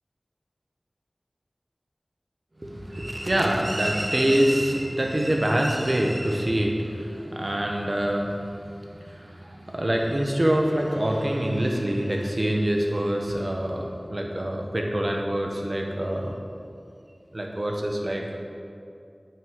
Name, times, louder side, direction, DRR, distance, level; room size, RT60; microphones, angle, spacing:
voice 1, 2.6-8.6 9.0-16.3 17.3-18.4, right 1 dB, 45° right, 1 dB, 1.0 m, -25 dB
9.3 x 5.7 x 3.7 m, 2.5 s
wide cardioid pair, 40°, 0 cm